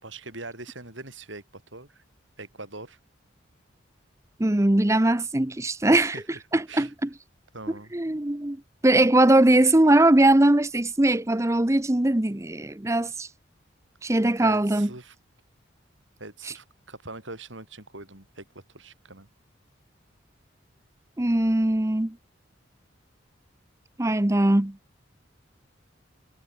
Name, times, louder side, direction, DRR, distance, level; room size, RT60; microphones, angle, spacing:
voice 1, 0.0-2.0 2.4-3.0 5.9-6.4 6.7-6.9 7.5-7.9 14.4-15.2 16.2-19.3, right 3 dB, 75° right, 7.2 m, -42 dB
voice 2, 4.4-6.2 6.5-7.1 7.7-8.6 8.8-13.3 14.0-14.9 21.2-22.2 24.0-24.8, right 1 dB, 15° right, 0.7 m, -21 dB
head